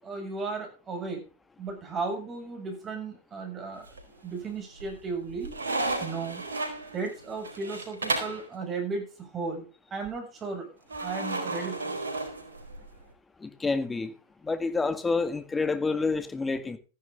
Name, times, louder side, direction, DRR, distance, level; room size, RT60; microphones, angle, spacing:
voice 1, 0.0-1.2 1.6-3.9 4.2-5.5 6.0-6.4 6.9-10.7 11.0-12.0, right 4 dB, 20° right, 4 dB, 7.3 m, -35 dB
sound 1, 3.8-4.4 4.8-8.5 10.9-13.0, right 2 dB, 85° right, 4.4 m, -33 dB
voice 2, 13.4-14.1 14.4-16.8, left 4 dB, 10° left, 11 dB, 1.9 m, -28 dB
14.5 x 11.5 x 3.9 m, 0.35 s
hypercardioid pair, 110°, 0 cm